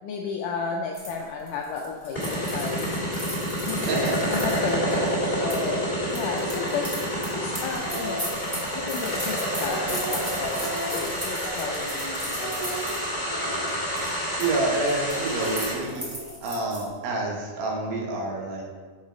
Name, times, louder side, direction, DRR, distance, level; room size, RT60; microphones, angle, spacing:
voice 1, 0.0-3.8 4.3-7.0 7.3-8.2 8.7-12.8, left 5 dB, 80° left, 1 dB, 1.9 m, -33 dB
sound 1, 0.9-5.6 6.1-13.0 13.4-13.7 14.0-14.5 14.7-16.9, equal, 20° right, 1.0 m, -37 dB
sound 2, 2.2-15.7, equal, 20° left, 1.9 m, -29 dB
sound 3, 7.7-8.3 9.1-12.0 12.3-13.8 15.0-16.4, right 2 dB, 60° right, 1.2 m, -37 dB
voice 2, 14.4-16.0 16.4-18.6, right 2 dB, 75° right, 0 dB, 3.0 m, -28 dB
7.0 x 5.6 x 5.0 m, 1.5 s
omnidirectional pair, 4.3 m